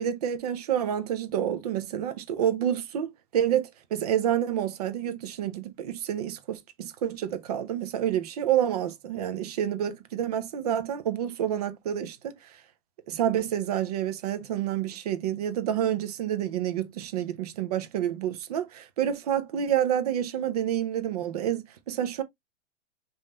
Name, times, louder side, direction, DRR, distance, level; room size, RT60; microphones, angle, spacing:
voice 1, 0.0-3.1 3.3-12.3 13.1-22.2, right 10 dB, 35° right, 0.6 m, -28 dB
5.3 x 2.7 x 3.1 m
supercardioid pair, 170°, 37 cm